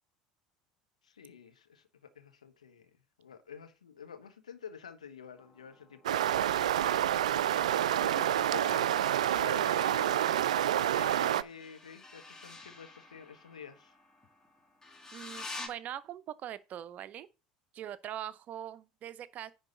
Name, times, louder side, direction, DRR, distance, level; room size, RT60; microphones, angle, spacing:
voice 1, 1.0-6.7 8.0-10.4 10.9-13.9, left 7 dB, 80° left, 1.1 m, -49 dB
sound 1, 5.4-8.4 10.7-15.7, left 3 dB, 15° left, 2.2 m, -49 dB
sound 2, 6.1-11.4, right 11 dB, 75° right, 0.3 m, -28 dB
voice 2, 15.1-17.3 17.7-19.5, right 11 dB, 45° right, 0.7 m, -42 dB
9.9 x 3.9 x 5.3 m
figure-of-eight pair, 70°, 4 cm